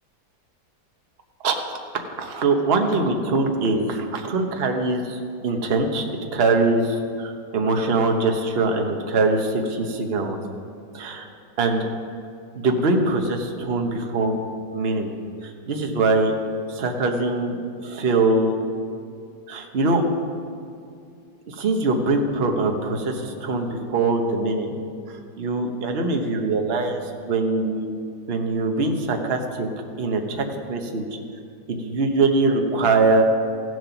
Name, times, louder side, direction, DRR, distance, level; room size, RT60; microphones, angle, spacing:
voice 1, 2.2-4.0 4.3-10.4 10.9-11.3 11.6-11.9 12.5-14.4 14.7-15.1 15.4-16.3 16.7-18.6 19.5-20.0 21.5-24.7 25.1-27.0 27.2-27.9 28.3-29.7 30.0-31.1 31.7-33.2, right 3 dB, 40° right, 3 dB, 1.0 m, -22 dB
15.5 x 7.8 x 5.8 m, 2.4 s
omnidirectional pair, 2.1 m